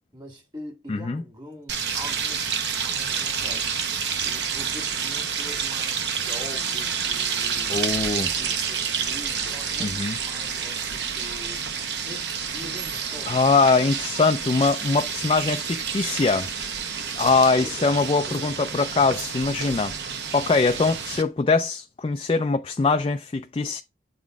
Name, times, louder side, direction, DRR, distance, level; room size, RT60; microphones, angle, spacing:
voice 1, 0.1-3.7 4.2-11.7 12.0-13.4 14.4-14.5 17.4-18.4, left 1 dB, 25° right, 1.8 m, -43 dB
voice 2, 0.9-1.2 7.7-8.3 9.8-10.1 13.3-16.5 17.2-19.9 20.3-23.8, left 4 dB, 30° left, 0.3 m, -22 dB
sound 1, 1.7-21.2, right 6 dB, 70° right, 0.9 m, -29 dB
8.3 x 3.9 x 4.8 m
head